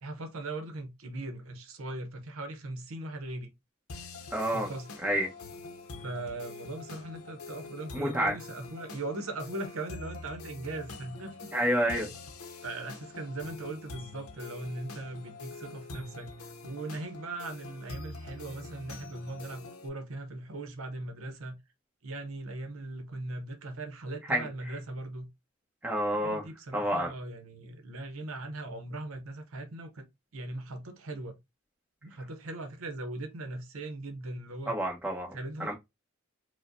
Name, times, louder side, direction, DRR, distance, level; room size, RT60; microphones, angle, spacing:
voice 1, 0.0-3.5 4.5-4.9 6.0-11.9 12.6-16.3 16.6-21.6 22.0-25.3 26.1-30.0 30.3-31.4 32.0-34.8 35.3-35.7, right 2 dB, 75° right, 0.7 m, -39 dB
sound 1, 3.9-19.9, left 3 dB, 85° left, 0.7 m, -45 dB
voice 2, 4.3-4.7 5.0-5.3 7.9-8.3 11.5-12.1 24.3-24.5 25.8-26.4 26.7-27.1 34.7-35.7, equal, 5° right, 0.9 m, -29 dB
4.7 x 2.1 x 2.5 m
head